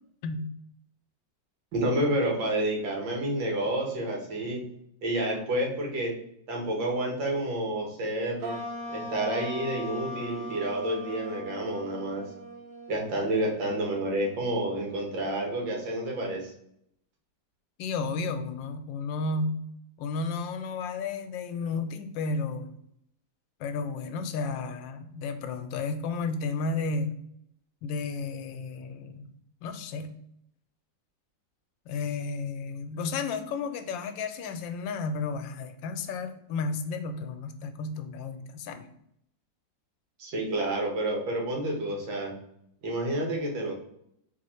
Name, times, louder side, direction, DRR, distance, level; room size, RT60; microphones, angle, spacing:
voice 1, 1.7-4.7 5.0-6.2 6.5-8.6 8.9-12.2 12.9-16.5 40.2-42.3 42.8-43.7, right 1 dB, 90° right, 0 dB, 1.9 m, -29 dB
sound 1, 8.4-15.1, equal, 55° right, 1.1 m, -40 dB
voice 2, 17.8-19.6 20.0-22.7 23.6-27.1 27.8-29.3 29.6-30.1 31.9-38.9, left 4 dB, 90° left, 8 dB, 1.3 m, -32 dB
4.1 x 2.8 x 4.2 m, 0.74 s
omnidirectional pair, 2.0 m